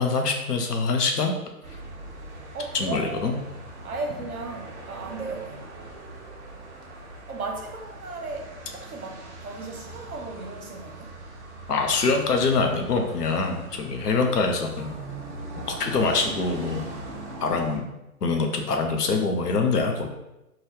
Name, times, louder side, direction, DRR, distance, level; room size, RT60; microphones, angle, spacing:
voice 1, 0.0-1.3 1.7-1.8 2.8-3.3 11.7-14.9 15.6-16.8 17.4-17.8 18.2-20.1, left 4 dB, 90° left, 3 dB, 0.7 m, -24 dB
sound 1, 1.6-17.8, right 2 dB, 50° right, 0.7 m, -41 dB
voice 2, 2.5-3.4 3.8-5.8 7.3-11.2 15.6-16.0, right 3 dB, 65° right, 2 dB, 0.9 m, -36 dB
2.9 x 2.2 x 3.2 m, 0.94 s
hypercardioid pair, 150°, 46 cm